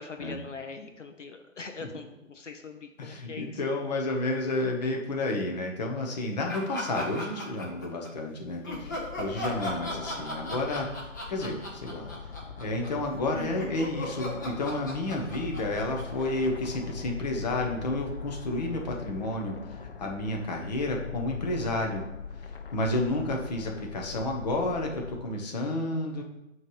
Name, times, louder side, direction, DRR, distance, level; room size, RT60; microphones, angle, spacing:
voice 1, 0.0-3.6 8.7-9.0, left 4 dB, 65° left, 5 dB, 0.9 m, -42 dB
voice 2, 3.0-8.6 9.2-12.1 12.6-22.0 22.4-26.2, left 2 dB, 30° left, 2 dB, 1.0 m, -31 dB
sound 1, 6.5-8.1 8.6-16.9, left 1 dB, 15° left, 0.7 m, -37 dB
sound 2, 8.7-25.2, left 5 dB, 45° left, 0.5 m, -42 dB
7.7 x 3.2 x 5.5 m, 0.94 s
figure-of-eight pair, 140°, 40 cm